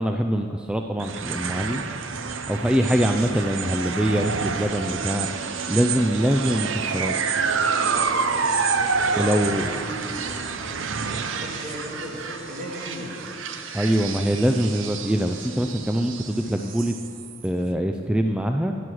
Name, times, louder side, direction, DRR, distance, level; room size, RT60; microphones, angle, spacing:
voice 1, 0.0-1.8 2.5-5.3 5.7-7.1 9.1-9.7 13.7-17.0 17.4-18.8, equal, 5° right, 4 dB, 0.3 m, -23 dB
sound 1, 1.0-17.5, right 5 dB, 75° right, 0.7 m, -28 dB
sound 2, 2.1-2.9 4.5-17.4, left 1 dB, 20° left, 2.2 m, -48 dB
voice 2, 7.8-13.2, equal, 50° right, -2 dB, 2.5 m, -37 dB
12.5 x 10.0 x 6.2 m, 2.6 s
head